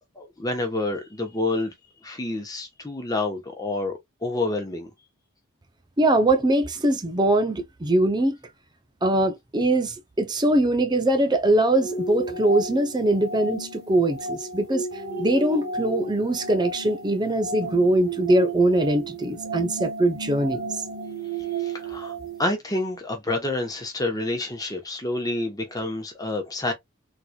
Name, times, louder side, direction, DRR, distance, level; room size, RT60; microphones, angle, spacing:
voice 1, 0.1-1.7 2.0-4.9 21.5-22.1 22.4-26.7, left 2 dB, 15° left, 1.0 m, -28 dB
voice 2, 6.0-8.4 9.0-14.9 15.2-20.8, right 1 dB, 20° right, 0.6 m, -22 dB
sound 1, 11.7-22.4, right 3 dB, 50° right, 1.3 m, -33 dB
3.9 x 3.0 x 2.3 m
head